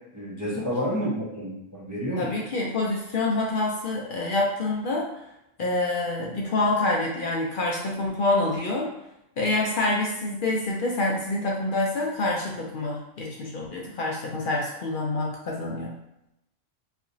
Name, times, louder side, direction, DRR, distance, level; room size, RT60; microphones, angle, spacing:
voice 1, 0.1-2.3, equal, 20° right, -7 dB, 0.5 m, -29 dB
voice 2, 2.2-5.1 5.6-8.9 9.4-15.9, left 2 dB, 65° left, -2 dB, 0.5 m, -26 dB
3.1 x 2.8 x 2.6 m, 0.86 s
omnidirectional pair, 1.3 m